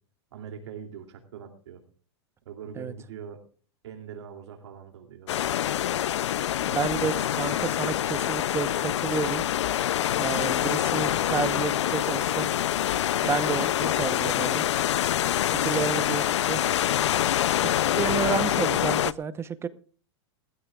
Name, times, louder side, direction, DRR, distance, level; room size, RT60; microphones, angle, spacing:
voice 1, 0.3-1.8 2.4-3.4 3.8-5.3 10.8-11.9 12.3-12.4 16.0-16.2 17.5-18.0, right 7 dB, 75° right, 5 dB, 2.8 m, -43 dB
sound 1, 5.3-19.1, left 11 dB, 85° left, 0.5 m, -26 dB
voice 2, 6.7-9.4 10.2-12.5 13.2-14.7 15.5-16.6 17.6-19.7, right 6 dB, 15° right, 15 dB, 0.9 m, -31 dB
20.5 x 14.5 x 2.4 m, 0.41 s
hypercardioid pair, 135°, 14 cm